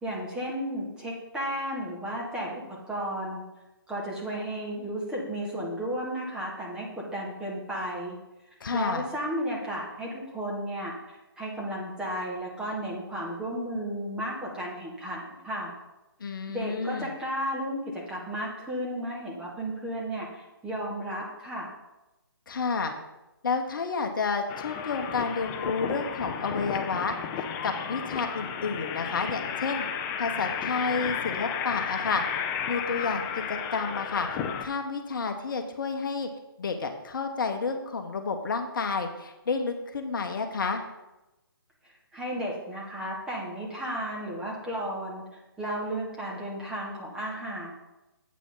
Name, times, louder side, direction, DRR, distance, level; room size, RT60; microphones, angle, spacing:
voice 1, 0.0-3.4 3.9-8.2 8.7-10.9 11.4-15.7 16.5-21.7 41.8-45.2 45.6-47.7, right 1 dB, 5° right, -4 dB, 1.7 m, -33 dB
voice 2, 8.6-9.1 16.2-17.1 22.5-22.9 23.4-27.2 27.6-29.8 30.2-32.2 32.7-34.3 34.6-36.3 36.6-40.8, left 4 dB, 55° left, 4 dB, 1.1 m, -30 dB
sound 1, 24.5-34.6, left 7 dB, 20° left, 0.5 m, -33 dB
8.4 x 8.2 x 3.9 m, 1.0 s
hypercardioid pair, 150°, 13 cm